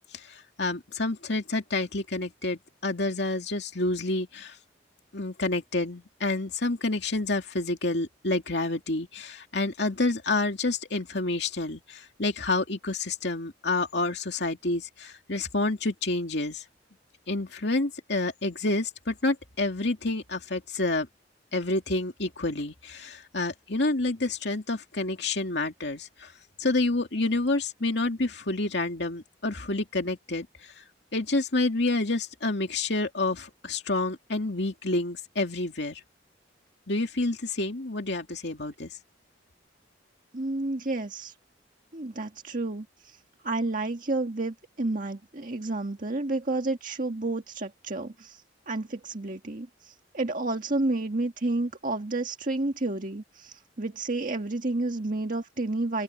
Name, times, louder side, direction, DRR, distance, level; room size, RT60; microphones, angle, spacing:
voice 1, 0.0-4.6 5.1-16.6 17.3-21.1 21.5-26.3 26.6-30.8 31.1-36.0 36.9-39.0, left 2 dB, 65° left, 2.7 m, -29 dB
voice 2, 40.3-41.3 41.9-43.2 43.4-56.0, right 2 dB, 45° right, 1.7 m, -30 dB
open air
head